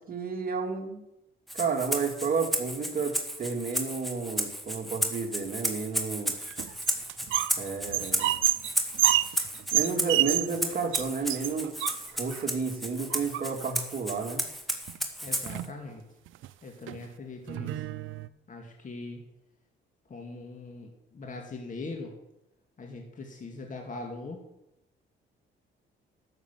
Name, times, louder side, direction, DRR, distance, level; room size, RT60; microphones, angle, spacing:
voice 1, 0.1-1.0 1.5-6.3 7.6-8.3 9.7-11.7 12.1-14.4, right 5 dB, 45° right, 2 dB, 2.6 m, -31 dB
Rattle (instrument), 1.5-15.7, equal, ahead, 2.0 m, -33 dB
sound 1, 6.4-7.6 7.8-10.6 10.9-11.0 11.3-12.4 13.1-13.8 14.9-15.0 15.3-15.8 16.3-16.5 16.9-17.0 17.5-18.3, right 14 dB, 80° right, 0.6 m, -28 dB
voice 2, 15.2-16.0 16.6-17.9 18.5-19.2 20.1-22.1 22.8-24.4, left 3 dB, 40° left, 2 dB, 2.3 m, -41 dB
12.5 x 7.1 x 7.6 m, 0.89 s
cardioid pair, 90°, 20 cm